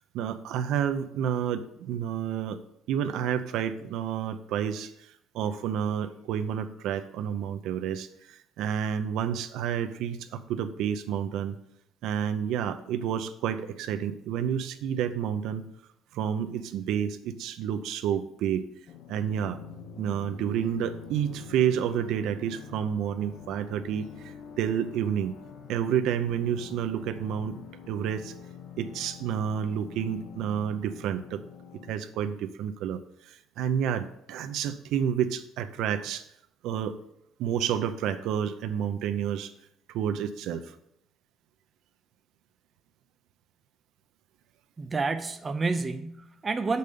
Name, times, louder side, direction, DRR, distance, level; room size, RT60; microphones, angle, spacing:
voice 1, 0.1-2.6 2.9-11.6 12.0-15.7 16.1-18.6 19.1-19.6 20.0-25.3 25.7-27.6 27.9-28.3 28.8-31.4 31.9-33.0 33.3-36.3 36.6-37.0 37.4-39.5 39.9-40.7, right 9 dB, 70° right, 9 dB, 0.6 m, -30 dB
sound 1, 18.9-31.9, left 6 dB, 55° left, 0.9 m, -46 dB
voice 2, 44.8-46.8, right 4 dB, 20° right, 8 dB, 0.5 m, -29 dB
6.6 x 5.4 x 6.7 m, 0.76 s
cardioid pair, 145°, 0 cm